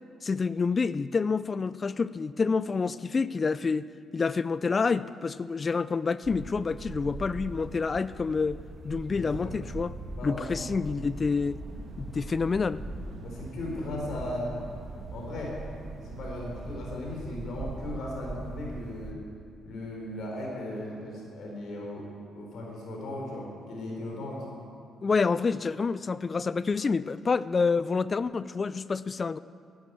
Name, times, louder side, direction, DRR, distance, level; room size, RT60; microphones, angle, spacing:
voice 1, 0.2-3.9 4.1-8.6 8.8-9.9 10.2-11.6 12.0-12.8 25.0-29.4, left 4 dB, 35° left, 17 dB, 0.3 m, -28 dB
sound 1, 6.2-19.1, right 3 dB, 50° right, 1.6 m, -41 dB
voice 2, 9.1-9.5 10.2-10.7 13.2-14.6 15.1-15.6 16.0-19.2 19.6-22.1 22.4-24.4, left 1 dB, 70° left, -2 dB, 4.1 m, -37 dB
13.5 x 10.5 x 9.2 m, 2.3 s
cardioid pair, 90°, 0 cm